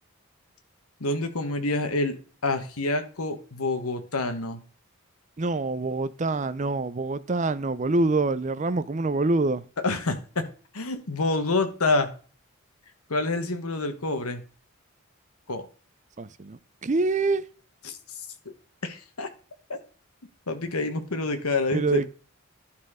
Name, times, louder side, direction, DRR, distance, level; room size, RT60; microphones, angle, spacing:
voice 1, 1.0-2.2 2.4-4.6 9.8-10.5 10.7-12.1 13.1-14.4 15.5-15.6 17.8-18.0 18.8-19.3 19.7-19.8 20.5-22.0, left 2 dB, 85° left, 1.3 m, -27 dB
voice 2, 5.4-9.6 16.2-17.4 21.7-22.1, right 3 dB, 35° right, 0.5 m, -26 dB
11.5 x 4.3 x 4.9 m
head